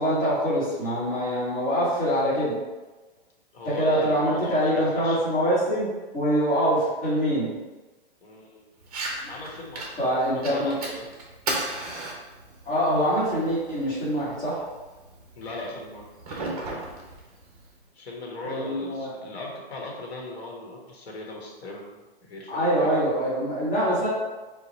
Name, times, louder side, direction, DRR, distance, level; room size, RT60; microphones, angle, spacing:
voice 1, 0.0-2.5 3.6-5.9 6.1-7.5 10.0-10.8 12.6-14.6 18.4-19.1 22.5-24.1, equal, 15° left, -11 dB, 1.2 m, -24 dB
voice 2, 3.5-5.2 8.2-8.6 9.3-11.0 15.3-16.4 17.9-22.9, left 2 dB, 75° left, -1 dB, 1.3 m, -39 dB
Fire, 8.8-17.8, right 2 dB, 35° right, 0.9 m, -37 dB
4.6 x 2.3 x 4.0 m, 1.2 s
hypercardioid pair, 175°, 32 cm